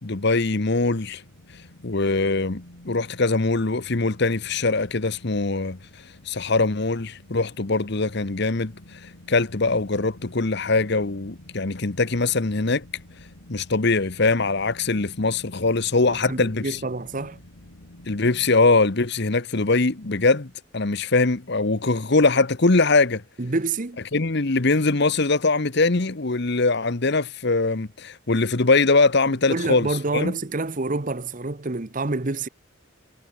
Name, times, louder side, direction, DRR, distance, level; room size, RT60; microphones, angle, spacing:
voice 1, 0.0-1.2 1.8-5.8 6.3-8.7 9.3-12.9 13.5-16.8 18.1-23.2 24.1-30.3, left 3 dB, 55° left, 1.1 m, -22 dB
sound 1, 0.8-18.5, left 1 dB, 80° left, 2.5 m, -48 dB
voice 2, 16.1-17.4 23.4-24.0 29.5-32.5, right 3 dB, 40° right, 0.9 m, -27 dB
head